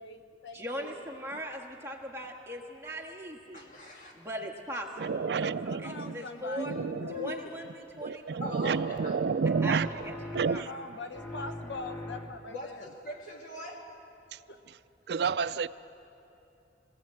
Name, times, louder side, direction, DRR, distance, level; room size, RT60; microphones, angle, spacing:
voice 1, 0.0-1.0 5.7-7.5 10.5-12.9 14.5-14.6, left 3 dB, 85° left, 7 dB, 1.2 m, -42 dB
voice 2, 0.5-3.7 4.1-6.7 7.1-8.4 9.6-10.1 10.4-10.8, equal, 15° right, -1 dB, 1.6 m, -40 dB
voice 3, 3.5-4.2 6.6-7.4 8.4-9.2 12.5-13.8, equal, 45° left, -1 dB, 2.7 m, -41 dB
voice 4, 5.0-6.2 6.7-7.1 8.0-10.7 14.3-14.4 15.1-15.7, right 5 dB, 65° right, 14 dB, 0.4 m, -30 dB
sound 1, 9.4-10.8 11.1-12.6, left 1 dB, 10° left, 0.9 m, -42 dB
21.5 x 16.0 x 7.6 m, 2.8 s
head